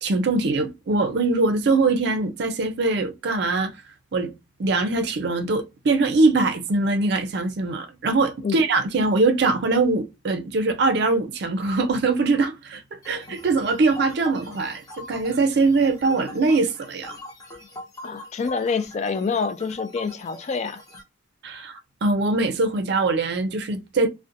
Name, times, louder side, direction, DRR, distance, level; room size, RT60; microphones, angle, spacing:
voice 1, 0.0-3.7 4.1-4.3 4.6-17.1 21.4-24.1, right 3 dB, 65° right, 0.4 m, -22 dB
sound 1, 13.0-21.0, left 2 dB, 20° left, 0.7 m, -42 dB
voice 2, 18.0-20.8, left 5 dB, 40° left, 0.3 m, -27 dB
2.6 x 2.1 x 2.5 m
head